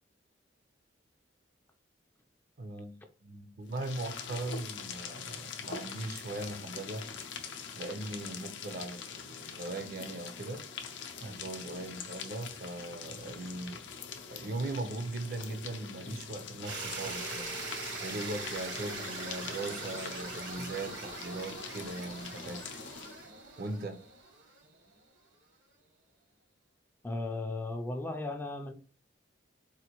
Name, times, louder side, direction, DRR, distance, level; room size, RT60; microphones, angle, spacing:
voice 1, 2.6-7.1 7.8-10.7 11.2-13.8 14.3-17.6 18.0-22.7 23.6-24.0, right 2 dB, 50° right, 0.5 m, -39 dB
sound 1, 3.7-23.3, left 6 dB, 75° left, 0.5 m, -44 dB
sound 2, 16.6-24.7, right 3 dB, 75° right, 1.1 m, -41 dB
voice 2, 27.0-28.7, left 2 dB, 10° left, 0.3 m, -36 dB
4.1 x 2.5 x 2.9 m
head